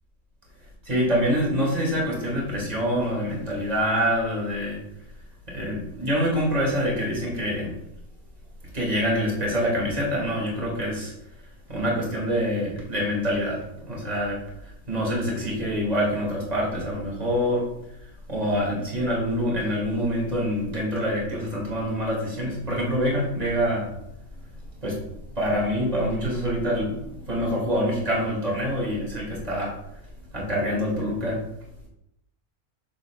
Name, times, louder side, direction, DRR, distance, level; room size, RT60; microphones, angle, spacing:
voice 1, 0.8-4.8 5.5-7.7 8.7-11.1 11.7-14.4 14.9-17.7 18.3-23.9 24.8-25.0 25.3-29.8 30.3-31.4, equal, 25° right, -3 dB, 2.4 m, -26 dB
7.4 x 7.0 x 2.4 m, 0.82 s
omnidirectional pair, 1.6 m